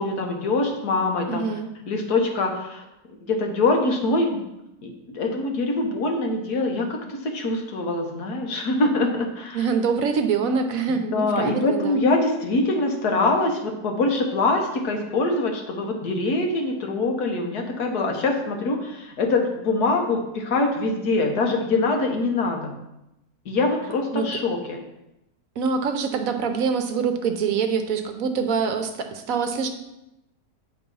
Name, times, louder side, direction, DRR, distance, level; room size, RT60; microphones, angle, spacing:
voice 1, 0.0-1.6 1.8-4.4 4.8-9.7 11.1-22.7 23.4-24.8, left 2 dB, 80° left, 3 dB, 1.7 m, -24 dB
voice 2, 1.3-1.7 9.5-12.1 24.1-24.3 25.6-29.7, right 5 dB, 65° right, 7 dB, 1.1 m, -25 dB
8.3 x 3.8 x 5.4 m, 0.88 s
omnidirectional pair, 1.7 m